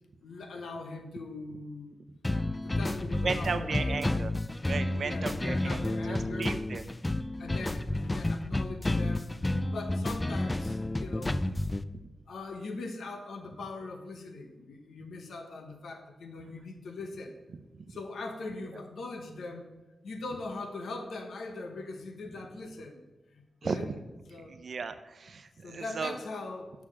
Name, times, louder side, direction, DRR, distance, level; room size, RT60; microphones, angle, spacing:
voice 1, 0.2-2.0 2.6-4.0 4.9-6.6 7.4-9.3 9.6-11.3 12.3-17.3 17.9-19.7 20.0-23.0 23.3-23.9 24.3-24.5 25.6-26.7, left 3 dB, 80° left, 4 dB, 0.8 m, -41 dB
sound 1, 2.2-11.8, left 1 dB, 20° left, 0.4 m, -31 dB
voice 2, 3.2-4.3 4.6-6.9 17.7-17.8 18.6-18.7 23.6-23.9 24.4-26.2, right 4 dB, 65° right, 9 dB, 0.6 m, -35 dB
6.6 x 5.9 x 6.1 m, 1.1 s
cardioid pair, 65°, 0 cm